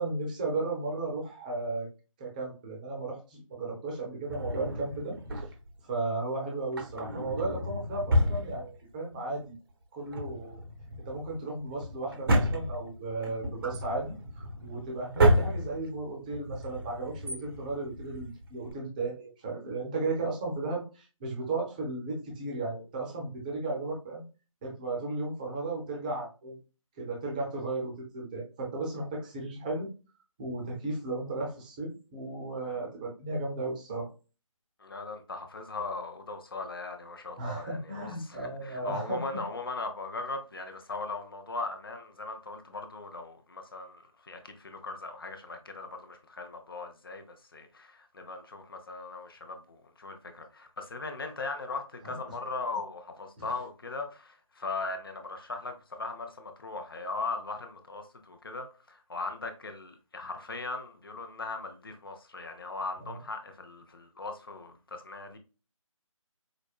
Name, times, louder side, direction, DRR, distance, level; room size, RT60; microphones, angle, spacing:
voice 1, 0.0-1.9 2.2-5.1 5.9-9.5 9.9-10.6 11.0-14.1 14.6-24.2 24.6-26.6 27.0-29.9 30.4-34.1 37.4-39.2 52.0-52.1 53.4-53.5 63.0-63.1, right 2 dB, 15° right, 0.8 m, -35 dB
Drawer open or close, 4.3-5.8 6.6-9.1 9.4-9.5 10.0-18.7, equal, 40° right, 0.9 m, -30 dB
voice 2, 34.8-65.4, left 3 dB, 40° left, 0.6 m, -39 dB
5.0 x 2.1 x 2.4 m
figure-of-eight pair, 155°, 18 cm